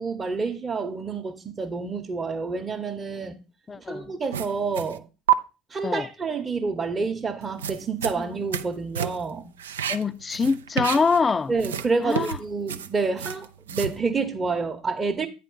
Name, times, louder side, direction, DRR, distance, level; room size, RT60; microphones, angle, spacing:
voice 1, 0.0-3.4 3.8-5.1 5.7-9.5 11.5-15.3, right 4 dB, 30° right, 0.9 m, -28 dB
voice 2, 3.7-4.1 5.8-6.1 8.2-8.3 9.9-11.5 12.0-12.4, left 4 dB, 25° left, 0.4 m, -24 dB
sound 1, 4.3-5.0 5.3-5.4 7.4-8.7 8.9-9.3 9.6-11.3 11.6-14.0, right 10 dB, 80° right, 0.4 m, -29 dB
9.2 x 4.2 x 5.4 m
hypercardioid pair, 65°, 0 cm